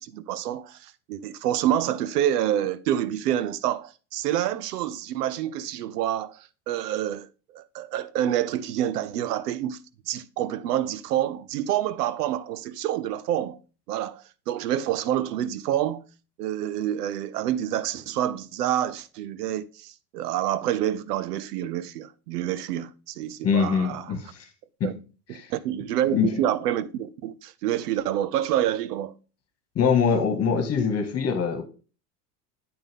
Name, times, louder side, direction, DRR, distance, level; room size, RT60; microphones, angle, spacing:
voice 1, 0.0-7.3 7.5-9.8 10.1-13.6 13.9-16.0 16.4-24.1 24.8-24.9 25.3-29.1, right 11 dB, 85° right, 0.7 m, -27 dB
voice 2, 23.4-24.4 24.8-24.9 25.3-25.5 26.1-26.3 29.8-31.6, left 6 dB, 30° left, 1.8 m, -23 dB
8.8 x 5.4 x 3.6 m
hypercardioid pair, 100°, 46 cm